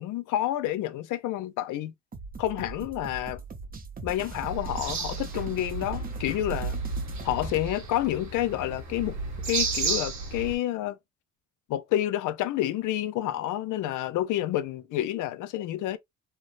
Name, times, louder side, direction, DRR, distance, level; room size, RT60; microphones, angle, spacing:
voice 1, 0.0-1.9 2.4-3.4 4.0-6.7 7.2-9.2 9.5-11.0 11.7-16.0, left 13 dB, 85° left, 0.5 m, -29 dB
sound 1, 2.1-7.7, right 3 dB, 30° right, 0.7 m, -40 dB
sound 2, 4.4-10.6, right 4 dB, 70° right, 1.3 m, -33 dB
3.3 x 2.1 x 2.4 m
cardioid pair, 90°, 30 cm